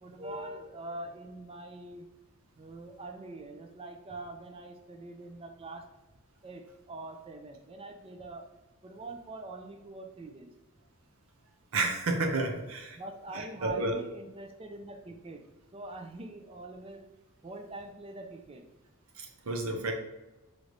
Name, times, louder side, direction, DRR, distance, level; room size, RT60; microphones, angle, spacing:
voice 1, 0.0-2.1 2.6-5.9 6.4-8.4 8.8-10.5 13.0-17.1 17.4-18.6, right 2 dB, 25° right, 4 dB, 0.5 m, -44 dB
voice 2, 11.7-13.0 13.3-14.0 19.2-19.9, right 2 dB, 70° right, 3 dB, 0.7 m, -31 dB
3.1 x 3.1 x 3.9 m, 1.0 s
head